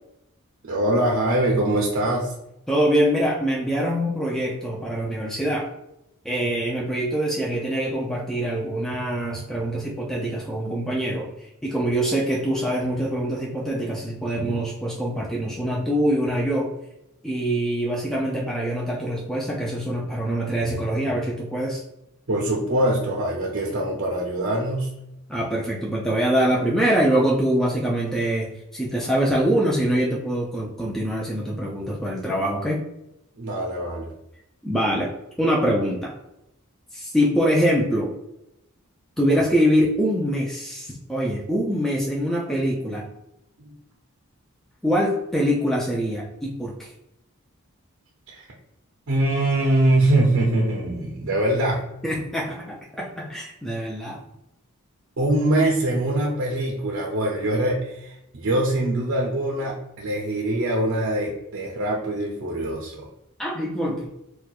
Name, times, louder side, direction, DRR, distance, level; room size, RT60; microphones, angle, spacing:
voice 1, 0.6-2.3 22.3-24.9 33.4-34.1 43.6-43.7 48.3-48.4 49.1-51.8 55.2-63.1, right 1 dB, 60° right, -2 dB, 0.6 m, -23 dB
voice 2, 2.7-5.7 6.2-16.7 17.2-21.8 25.3-32.8 34.6-35.1 35.4-36.1 36.9-38.1 39.2-43.0 44.8-46.9 52.0-54.2 63.4-64.1, equal, ahead, -4 dB, 0.4 m, -24 dB
4.3 x 2.2 x 2.3 m, 0.86 s
head